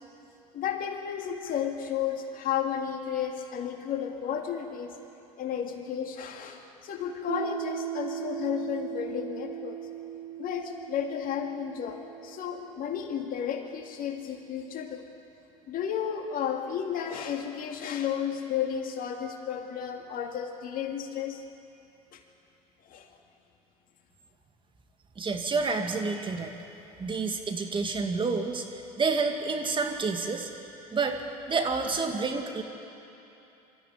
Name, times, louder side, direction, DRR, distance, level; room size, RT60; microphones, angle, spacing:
voice 1, 0.5-4.9 5.4-9.8 10.4-15.1 15.7-21.4 22.1-22.2 22.8-23.1, left 8 dB, 50° left, 4 dB, 2.3 m, -33 dB
Piano, 7.3-14.5, right 10 dB, 75° right, 2.0 m, -39 dB
voice 2, 25.2-26.5 27.0-30.5 30.9-31.2 31.5-32.6, right 4 dB, 25° right, 4 dB, 2.3 m, -29 dB
24.0 x 14.0 x 9.4 m, 2.9 s
hypercardioid pair, 70°, 19 cm